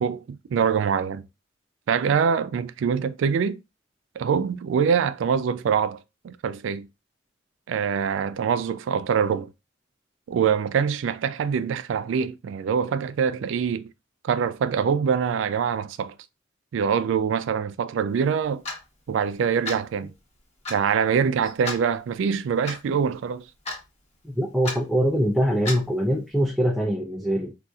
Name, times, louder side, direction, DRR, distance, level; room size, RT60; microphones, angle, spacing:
voice 1, 0.0-1.2 1.9-3.6 4.2-6.9 7.7-9.5 10.3-13.9 14.2-16.1 16.7-18.6 19.1-20.1 20.7-23.4, right 7 dB, 80° right, 0.3 m, -24 dB
Clock, 18.7-18.8 19.7-19.9 20.7-20.8 21.7-21.8 22.7-22.8 23.7-23.9 24.7-24.8 25.7-25.9, left 2 dB, 35° left, 1.0 m, -31 dB
voice 2, 24.2-27.5, equal, ahead, 0.4 m, -23 dB
4.0 x 2.5 x 2.3 m
head